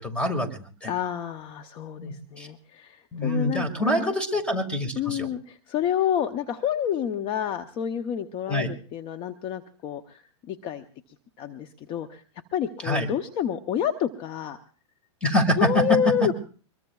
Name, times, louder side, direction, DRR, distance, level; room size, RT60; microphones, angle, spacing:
voice 1, 0.0-0.9 2.0-2.5 3.1-5.3 8.5-8.7 12.8-13.1 15.2-15.8, left 1 dB, 5° left, 7 dB, 2.0 m, -25 dB
voice 2, 0.9-4.1 5.0-10.8 11.4-12.2 12.5-14.6 15.6-16.3, left 9 dB, 35° left, 9 dB, 0.7 m, -29 dB
24.5 x 21.5 x 2.4 m, 0.39 s
hypercardioid pair, 130°, 15 cm